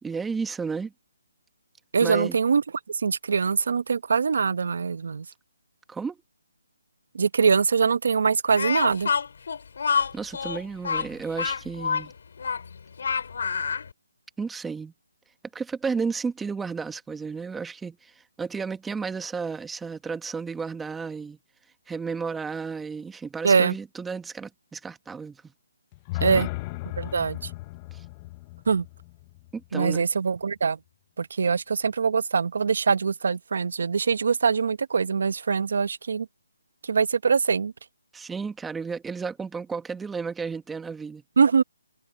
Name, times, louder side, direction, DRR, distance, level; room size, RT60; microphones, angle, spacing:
voice 1, 0.0-0.9 2.0-2.4 5.9-6.2 10.1-12.1 14.4-14.9 15.5-21.4 21.9-25.4 26.1-26.5 27.9-28.0 29.5-30.0 38.1-41.2, right 5 dB, 5° right, 1.4 m, -33 dB
voice 2, 1.9-2.6 3.0-5.2 7.1-9.1 23.4-23.7 26.2-26.5 27.0-27.4 28.7-28.8 29.7-30.8 31.2-36.3 36.9-37.7 41.4-41.6, right 5 dB, 65° right, 1.0 m, -23 dB
Speech, 8.5-13.9, left 6 dB, 60° left, 5.1 m, -27 dB
sound 1, 25.9-30.0, left 20 dB, 25° left, 0.8 m, -36 dB
hypercardioid pair, 160°, 0 cm